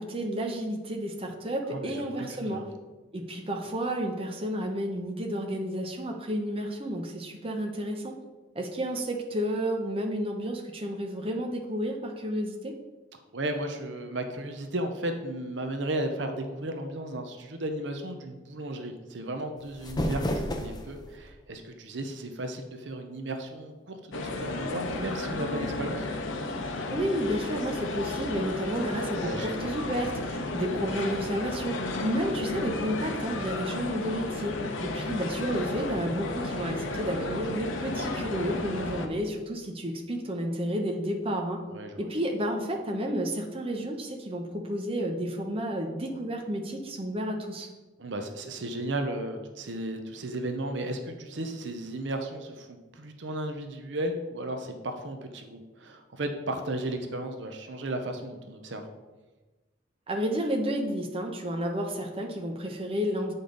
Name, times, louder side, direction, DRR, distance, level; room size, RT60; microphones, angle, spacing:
voice 1, 0.0-2.6 3.1-8.1 8.5-12.7 26.9-34.5 34.8-41.6 42.0-47.7 60.1-63.3, equal, 30° right, 2 dB, 0.8 m, -31 dB
voice 2, 1.7-2.6 13.3-26.1 29.2-29.7 41.7-42.1 48.0-58.8, right 1 dB, 70° right, 6 dB, 0.7 m, -34 dB
sound 1, 19.6-21.2, left 1 dB, 20° left, 0.6 m, -31 dB
sound 2, 24.1-39.1, left 2 dB, 90° left, 0.8 m, -33 dB
8.4 x 5.3 x 3.9 m, 1.2 s
head